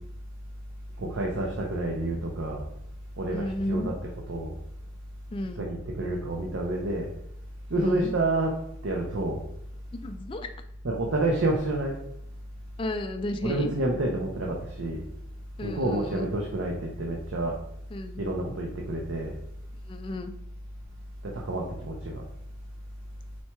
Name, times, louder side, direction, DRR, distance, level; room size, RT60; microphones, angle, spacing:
voice 1, 1.0-2.7 3.2-4.5 5.6-7.1 7.7-8.6 8.8-9.4 10.8-12.0 13.4-15.1 15.6-17.6 18.2-19.4 21.2-22.2, right 2 dB, 90° right, -1 dB, 0.7 m, -29 dB
voice 2, 3.3-3.9 5.3-5.6 7.8-8.1 9.9-10.5 12.8-13.7 15.6-16.3 17.9-18.2 19.9-20.3, left 1 dB, 25° left, 8 dB, 0.3 m, -33 dB
4.3 x 2.3 x 4.3 m, 0.74 s
head